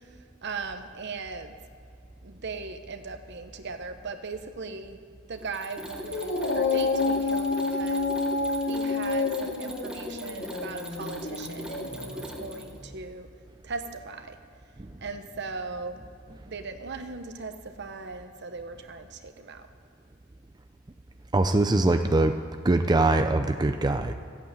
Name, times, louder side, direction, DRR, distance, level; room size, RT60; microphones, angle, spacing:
voice 1, 0.4-1.5 2.2-5.0 5.3-8.1 8.6-13.3 13.6-14.4 15.0-16.0 16.5-19.7, right 4 dB, 60° right, 7 dB, 1.0 m, -38 dB
Mechanisms, 5.4-12.8, equal, 5° right, 1.3 m, -40 dB
Dog, 6.0-12.6, left 3 dB, 65° left, 1.9 m, -29 dB
voice 2, 21.3-22.4 22.6-24.1, right 2 dB, 20° right, 7 dB, 0.5 m, -22 dB
14.5 x 8.5 x 9.0 m, 2.4 s
head